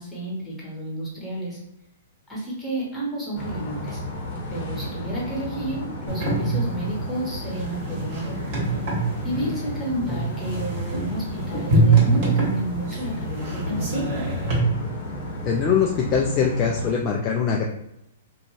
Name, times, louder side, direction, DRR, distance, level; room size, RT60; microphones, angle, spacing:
voice 1, 0.0-1.6 2.3-4.0 4.5-8.2 9.2-14.3, right 1 dB, 10° left, -5 dB, 1.1 m, -31 dB
sound 1, 3.3-16.9, left 1 dB, 50° left, 0.8 m, -33 dB
sound 2, 6.1-14.6, right 3 dB, 45° right, 1.3 m, -24 dB
voice 2, 15.4-17.7, left 6 dB, 30° left, 0 dB, 0.3 m, -22 dB
2.5 x 2.2 x 3.1 m, 0.86 s
hypercardioid pair, 125°, 0 cm